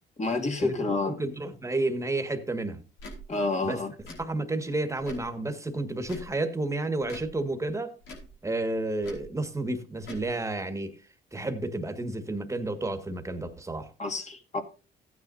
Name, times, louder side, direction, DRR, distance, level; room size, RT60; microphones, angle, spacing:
voice 1, 0.2-1.2 3.3-3.9 14.0-14.6, left 3 dB, 35° left, 2.4 m, -29 dB
voice 2, 1.0-2.8 3.6-3.8 4.2-7.9 8.4-10.9 11.3-13.9, right 2 dB, 15° right, 1.8 m, -31 dB
Tick / Tick-tock, 3.0-3.2 4.0-4.2 5.0-5.3 6.0-6.3 7.0-7.3 8.0-8.3 9.0-9.3 10.0-10.3, left 1 dB, 80° left, 4.6 m, -43 dB
15.5 x 9.3 x 2.7 m
cardioid pair, 90°, 20 cm